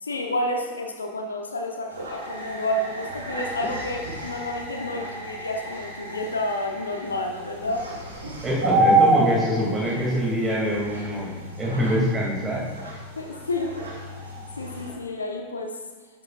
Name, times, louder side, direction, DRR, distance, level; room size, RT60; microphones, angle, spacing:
voice 1, 0.0-7.9 13.1-13.8 14.6-15.8, left 1 dB, 75° left, 3 dB, 1.0 m, -30 dB
sound 1, 1.9-14.9, right 2 dB, 75° right, 2.7 m, -29 dB
voice 2, 8.4-12.7, equal, 15° right, -3 dB, 2.8 m, -25 dB
11.5 x 8.8 x 2.6 m, 1.4 s
figure-of-eight pair, 90°, 0 cm